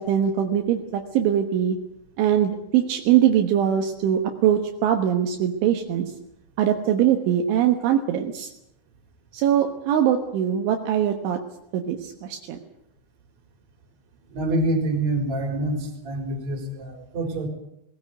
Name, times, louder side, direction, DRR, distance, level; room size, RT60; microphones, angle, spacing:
voice 1, 0.0-1.8 2.2-6.1 6.6-8.5 9.3-11.4 11.7-12.6, right 10 dB, 75° right, 4 dB, 3.7 m, -22 dB
voice 2, 14.3-17.5, right 1 dB, 35° right, 4 dB, 4.9 m, -26 dB
19.5 x 19.0 x 9.2 m, 0.80 s
omnidirectional pair, 5.6 m